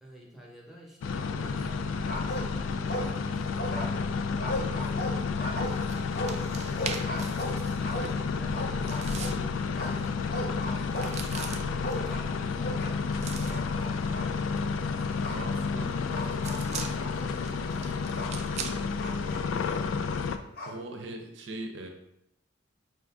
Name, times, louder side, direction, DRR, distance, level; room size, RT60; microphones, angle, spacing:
voice 1, 0.0-5.7 6.7-14.7 16.6-20.1, equal, ahead, -3 dB, 0.8 m, -50 dB
sound 1, 1.0-20.4, left 5 dB, 80° left, 0.3 m, -31 dB
sound 2, 1.4-1.8 2.1-3.3 3.6-9.4 9.8-13.1 13.4-14.3 15.2-15.4 16.1-18.4 19.0-20.8, left 1 dB, 50° left, 0.7 m, -37 dB
sound 3, 5.4-20.1, right 6 dB, 35° right, 0.3 m, -44 dB
voice 2, 15.2-15.9 16.1-16.2 20.6-21.9, right 2 dB, 70° right, 4 dB, 0.7 m, -40 dB
4.9 x 2.5 x 3.5 m, 0.81 s
head